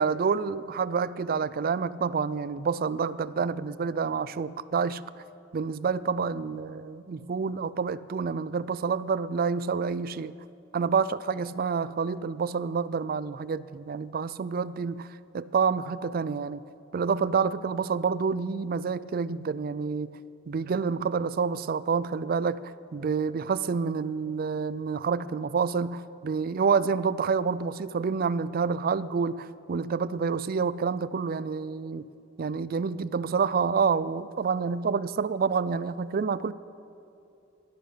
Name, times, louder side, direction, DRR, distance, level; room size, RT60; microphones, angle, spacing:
voice 1, 0.0-5.0 5.5-10.4 10.7-15.1 15.3-16.6 16.9-20.1 20.5-22.6 22.9-32.1 32.4-36.5, right 5 dB, 50° right, 17 dB, 0.4 m, -28 dB
16.0 x 11.5 x 6.7 m, 2.7 s
head